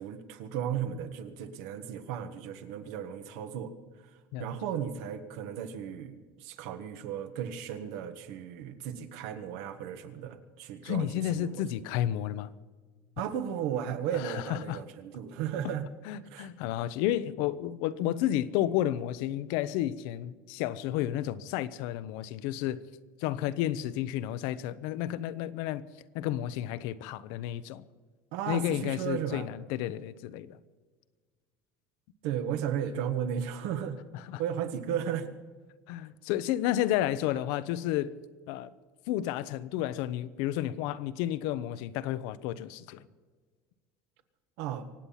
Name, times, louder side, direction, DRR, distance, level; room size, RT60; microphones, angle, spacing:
voice 1, 0.0-3.7 4.4-11.6 13.2-15.8 16.3-16.5 28.3-29.5 32.2-34.0 34.4-35.3 44.6-44.9, right 9 dB, 70° right, 1.5 m, -35 dB
voice 2, 10.8-12.5 14.1-14.8 16.0-22.8 23.2-25.8 26.1-27.8 28.5-30.6 34.1-34.4 35.9-38.1 38.5-38.7 39.1-43.0, left 12 dB, 65° left, 0.8 m, -31 dB
24.5 x 8.7 x 5.7 m
cardioid pair, 160°, 8 cm